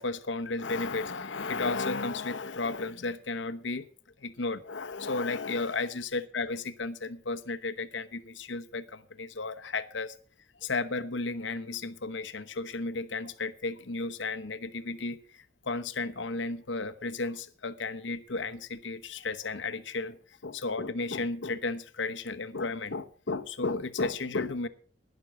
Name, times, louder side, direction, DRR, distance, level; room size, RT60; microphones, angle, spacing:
voice 1, 0.0-3.8 4.2-10.2 10.6-24.7, left 3 dB, 75° left, 12 dB, 1.0 m, -33 dB
12.0 x 10.5 x 6.0 m, 0.43 s
head